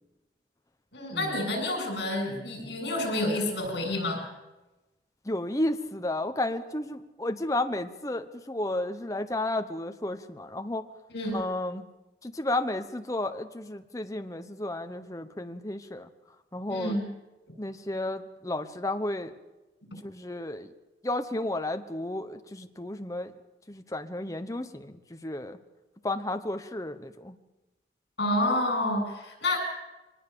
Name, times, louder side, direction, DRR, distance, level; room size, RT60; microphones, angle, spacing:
voice 1, 0.9-4.2 11.1-11.4 16.7-17.0 28.2-29.6, left 1 dB, 70° left, 4 dB, 7.4 m, -29 dB
voice 2, 5.2-10.8 11.3-11.9 12.2-16.1 16.5-17.0 17.6-19.3 20.0-20.7 21.0-23.3 23.7-25.6 26.0-27.4, left 1 dB, 20° left, 7 dB, 1.0 m, -32 dB
23.5 x 20.5 x 6.9 m, 1.1 s
head